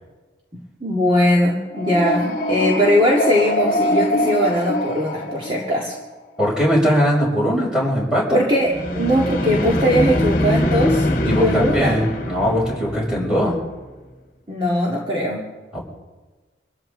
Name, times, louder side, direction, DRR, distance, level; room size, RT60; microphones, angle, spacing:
voice 1, 0.8-6.0 8.3-12.0 14.5-15.4, equal, 30° right, -3 dB, 2.0 m, -20 dB
sound 1, 1.7-6.0 8.6-13.6, left 1 dB, 45° left, 1.6 m, -23 dB
voice 2, 6.4-8.4 11.2-13.6 15.7-15.8, equal, 5° right, -5 dB, 6.6 m, -20 dB
26.5 x 14.0 x 3.9 m, 1.3 s
head